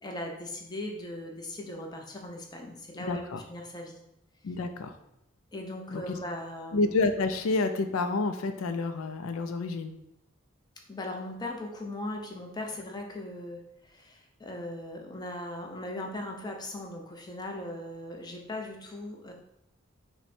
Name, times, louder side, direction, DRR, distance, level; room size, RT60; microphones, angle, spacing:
voice 1, 0.0-3.2 3.5-4.0 4.4-4.5 5.5-6.9 10.9-19.3, left 1 dB, 20° left, 1 dB, 0.6 m, -39 dB
voice 2, 3.1-3.4 4.4-4.9 5.9-6.2 6.7-9.9, left 3 dB, 80° left, 8 dB, 0.4 m, -29 dB
5.7 x 2.2 x 4.2 m, 0.79 s
head